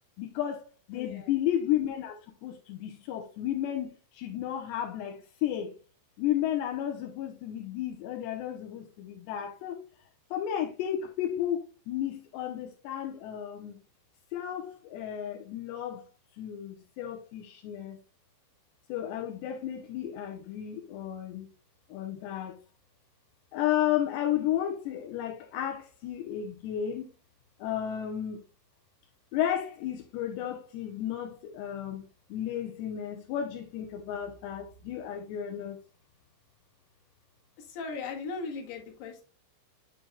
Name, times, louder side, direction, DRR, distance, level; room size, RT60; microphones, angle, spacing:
voice 1, 0.2-2.1 2.4-5.8 6.2-9.8 10.3-13.8 14.3-16.0 16.4-18.0 18.9-21.5 21.9-22.6 23.5-27.1 27.6-28.4 29.3-32.0 32.3-35.8, left 11 dB, 80° left, 2.6 m, -33 dB
voice 2, 0.9-1.4 37.6-39.2, left 4 dB, 60° left, 3.4 m, -38 dB
7.7 x 6.8 x 2.3 m
omnidirectional pair, 5.8 m